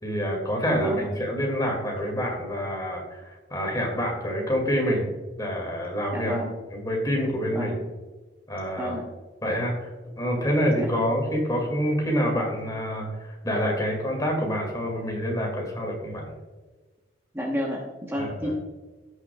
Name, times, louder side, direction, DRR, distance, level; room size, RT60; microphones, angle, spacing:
voice 1, 0.0-5.1 5.4-6.3 6.7-7.7 8.5-9.0 9.4-9.9 10.2-16.3 18.2-18.5, equal, 20° left, 0 dB, 2.2 m, -27 dB
voice 2, 6.1-6.5 7.5-7.8 8.8-9.0 10.8-11.0 17.3-18.5, equal, 10° right, -2 dB, 1.1 m, -31 dB
16.5 x 6.3 x 2.3 m, 1.3 s
head